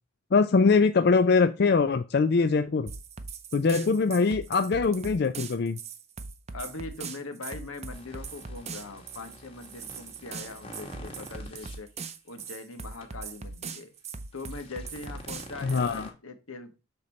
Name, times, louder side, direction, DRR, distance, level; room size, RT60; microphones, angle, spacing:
voice 1, 0.3-2.9 3.5-5.8 15.6-16.1, left 4 dB, 50° left, 9 dB, 0.4 m, -23 dB
sound 1, 2.9-16.0, right 5 dB, 30° right, 0.6 m, -40 dB
voice 2, 6.5-11.9 12.2-13.9 14.3-16.7, left 3 dB, 85° left, 7 dB, 1.3 m, -41 dB
sound 2, 7.9-11.8 12.4-12.6 13.0-13.1 14.3-16.1, left 1 dB, 25° left, 1.4 m, -47 dB
6.7 x 4.1 x 4.3 m, 0.29 s
head